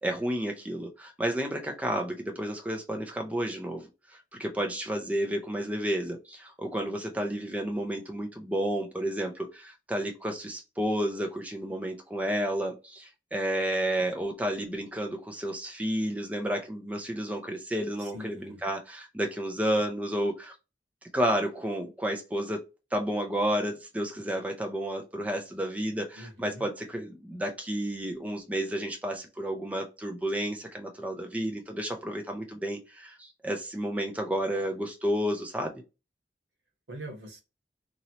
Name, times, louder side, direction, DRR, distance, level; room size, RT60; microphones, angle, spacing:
voice 1, 0.0-20.5 21.1-22.6 22.9-35.8, equal, 10° right, 0.5 m, -31 dB
voice 2, 18.0-18.6 26.1-26.7 36.9-37.4, equal, 85° right, 1.2 m, -43 dB
3.0 x 2.8 x 2.7 m
head